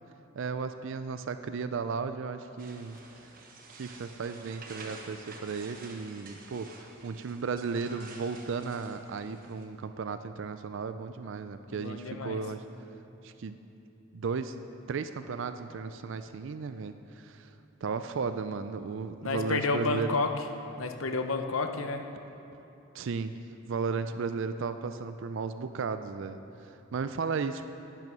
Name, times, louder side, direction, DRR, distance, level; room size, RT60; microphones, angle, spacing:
voice 1, 0.4-3.0 3.7-12.6 13.2-13.6 14.1-14.5 14.9-17.5 17.8-20.2 22.9-23.4 23.6-27.7, right 5 dB, 65° right, 10 dB, 0.4 m, -35 dB
sound 1, 2.6-9.6, right 3 dB, 45° right, 1.2 m, -49 dB
voice 2, 11.7-12.4 18.2-18.3 19.2-20.4 20.8-22.0, left 3 dB, 80° left, 6 dB, 0.8 m, -31 dB
10.5 x 9.4 x 6.3 m, 2.9 s
head